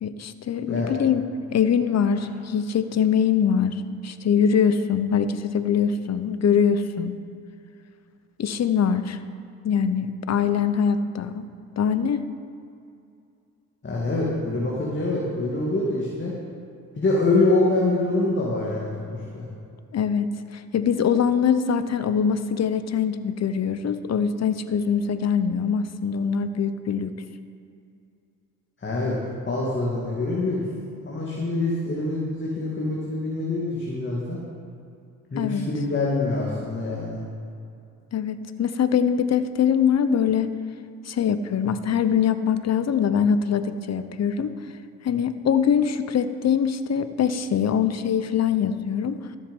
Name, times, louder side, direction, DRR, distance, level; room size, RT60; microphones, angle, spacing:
voice 1, 0.0-7.2 8.4-9.2 9.6-11.4 11.8-12.3 19.9-27.1 35.4-35.7 38.1-40.5 41.1-44.6 45.0-49.2, left 7 dB, 50° left, 12 dB, 0.8 m, -23 dB
voice 2, 13.8-16.4 17.0-19.5 28.8-29.2 29.4-30.6 31.0-34.4 35.3-37.2, left 2 dB, 35° left, -5 dB, 2.2 m, -25 dB
13.5 x 7.3 x 5.4 m, 2.5 s
cardioid pair, 70°, 34 cm